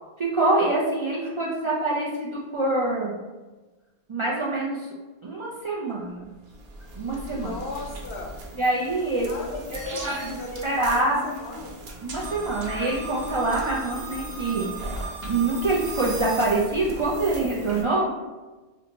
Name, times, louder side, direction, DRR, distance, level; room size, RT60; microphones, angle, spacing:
voice 1, 0.2-3.2 4.1-4.9 5.2-6.3 7.0-7.6 8.5-9.3 9.7-10.1 10.6-11.3 12.0-14.7 15.2-18.1, right 2 dB, 50° right, -5 dB, 0.3 m, -25 dB
sound 1, 6.2-17.8, right 2 dB, 70° right, 0.8 m, -37 dB
voice 2, 7.3-8.4 9.3-11.8, left 2 dB, 85° left, 0 dB, 0.9 m, -37 dB
2.6 x 2.2 x 3.9 m, 1.2 s
omnidirectional pair, 1.1 m